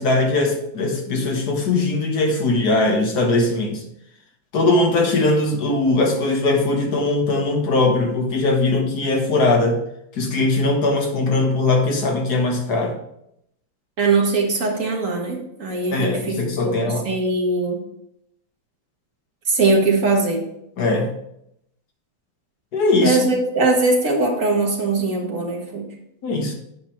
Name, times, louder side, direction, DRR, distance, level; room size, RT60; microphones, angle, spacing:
voice 1, 0.0-3.8 4.5-9.8 10.2-12.9 15.9-17.1 20.8-21.1 22.7-23.3 26.2-26.5, left 2 dB, 55° left, 2 dB, 1.8 m, -20 dB
voice 2, 14.0-16.4 16.6-17.8 19.5-20.5 23.0-25.9, right 3 dB, 40° right, 0 dB, 1.9 m, -21 dB
9.0 x 5.4 x 4.5 m, 0.79 s
omnidirectional pair, 2.2 m